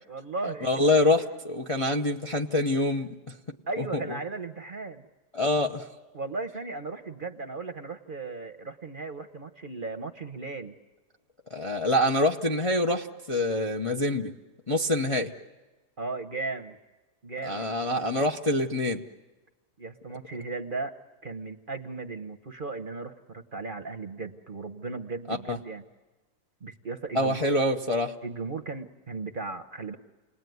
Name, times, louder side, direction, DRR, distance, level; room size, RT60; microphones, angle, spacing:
voice 1, 0.1-0.7 3.7-5.1 6.1-10.7 16.0-16.8 17.2-17.7 19.8-20.9 21.2-25.8 26.6-27.5 28.2-30.0, right 3 dB, 35° right, 7 dB, 1.0 m, -36 dB
voice 2, 0.6-3.1 3.8-4.0 5.3-5.9 11.5-14.3 14.7-15.3 17.4-19.0 25.3-25.6 27.1-28.1, left 1 dB, 25° left, 1 dB, 0.7 m, -25 dB
29.5 x 20.0 x 9.4 m, 1.2 s
omnidirectional pair, 1.8 m